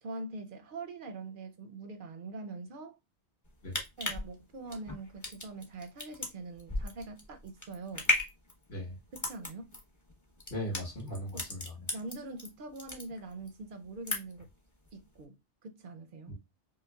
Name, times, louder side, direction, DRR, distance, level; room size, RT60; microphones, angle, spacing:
voice 1, 0.0-3.0 4.0-8.1 9.1-9.8 11.3-11.4 11.9-14.5 14.9-16.3, right 3 dB, 60° right, 0.6 m, -43 dB
sound 1, 3.4-12.5 12.8-13.5 13.8-14.5 14.9-15.0, left 1 dB, 20° left, 0.7 m, -35 dB
voice 2, 10.5-11.9 16.3-16.4, left 1 dB, 60° left, 1.7 m, -38 dB
5.3 x 2.1 x 2.3 m
omnidirectional pair, 1.2 m